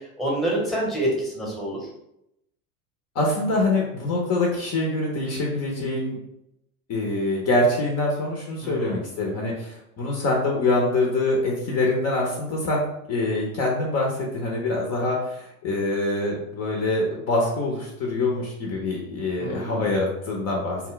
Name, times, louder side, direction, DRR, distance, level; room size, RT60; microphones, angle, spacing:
voice 1, 0.2-1.8 8.6-9.0 19.4-19.9, right 1 dB, ahead, -4 dB, 0.9 m, -27 dB
voice 2, 3.1-6.2 6.9-12.8 13.1-20.8, left 2 dB, 35° left, -1 dB, 0.7 m, -25 dB
2.2 x 2.1 x 3.8 m, 0.81 s
hypercardioid pair, 105°, 42 cm